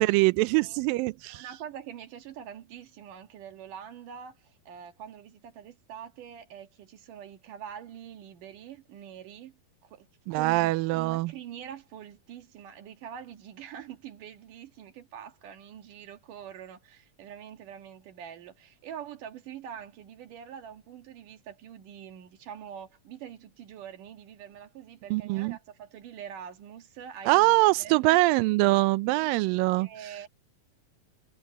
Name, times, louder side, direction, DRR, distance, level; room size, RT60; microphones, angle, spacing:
voice 1, 0.0-1.4 10.3-11.3 25.1-25.6 27.3-29.9, right 21 dB, 80° right, 2.2 m, -23 dB
voice 2, 1.3-28.2 29.0-29.3 29.8-30.3, right 9 dB, 65° right, 3.0 m, -45 dB
omnidirectional pair, 4.2 m